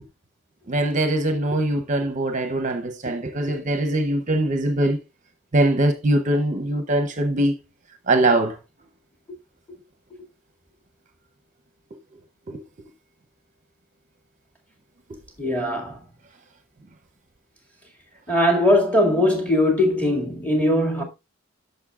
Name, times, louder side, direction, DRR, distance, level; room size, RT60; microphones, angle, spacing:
voice 1, 0.7-5.0 5.5-7.5 8.1-8.6 12.5-12.6, right 1 dB, 40° right, 0.7 m, -22 dB
voice 2, 15.4-16.0 18.3-21.0, left 1 dB, 10° left, 2.1 m, -20 dB
10.5 x 6.6 x 2.4 m
head